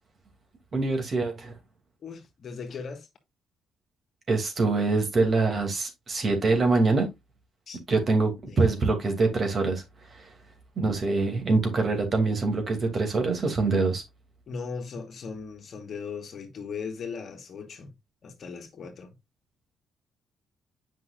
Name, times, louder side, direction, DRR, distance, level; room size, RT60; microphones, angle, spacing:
voice 1, 0.7-1.5 4.3-7.1 7.9-9.8 10.1-10.3 10.8-14.0, right 3 dB, 45° right, 2.5 m, -24 dB
voice 2, 2.0-3.1 7.7-7.8 8.5-8.8 14.5-17.9 18.2-19.1, left 5 dB, 55° left, 1.6 m, -38 dB
8.3 x 5.6 x 2.5 m
cardioid pair, 90°, 0 cm